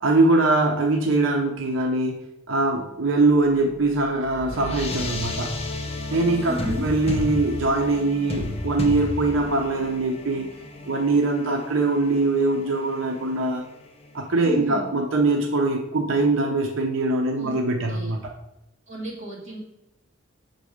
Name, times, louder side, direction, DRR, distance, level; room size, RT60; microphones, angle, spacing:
voice 1, 0.0-2.2 2.5-5.6 6.1-10.5 10.9-13.6 14.1-18.2, right 2 dB, 90° right, 2 dB, 0.7 m, -22 dB
sound 1, 3.6-14.2, left 1 dB, 30° left, 0.7 m, -33 dB
voice 2, 6.5-6.9 14.4-14.9 17.3-17.6 17.9-18.1 18.9-19.6, left 1 dB, 35° right, -5 dB, 2.2 m, -33 dB
6.2 x 4.0 x 4.9 m, 0.88 s
head